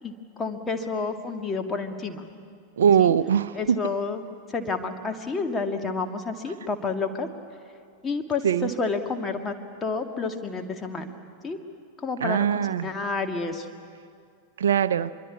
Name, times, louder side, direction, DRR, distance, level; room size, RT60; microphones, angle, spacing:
voice 1, 0.0-2.3 3.0-3.1 3.6-4.2 4.5-7.3 8.0-9.5 9.8-11.1 11.4-11.6 12.0-13.7, left 4 dB, 15° left, 2.1 m, -30 dB
voice 2, 2.8-3.8 8.4-8.7 12.2-12.9 14.6-15.1, right 8 dB, 65° right, 0.7 m, -21 dB
25.0 x 23.0 x 8.6 m
figure-of-eight pair, 90°, 0 cm